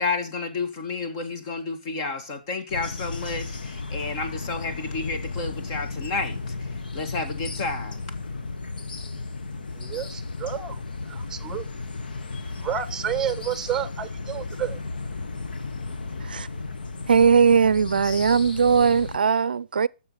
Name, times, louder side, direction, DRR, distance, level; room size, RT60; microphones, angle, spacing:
voice 1, 0.0-8.1, left 3 dB, 35° left, 2.1 m, -31 dB
sound 1, 2.7-19.2, left 3 dB, 70° left, 1.5 m, -34 dB
voice 2, 9.7-10.8 11.1-11.7 12.6-14.8, right 9 dB, 10° right, 1.1 m, -30 dB
voice 3, 17.1-19.9, right 6 dB, 75° right, 0.5 m, -19 dB
12.5 x 7.0 x 5.8 m
hypercardioid pair, 140°, 5 cm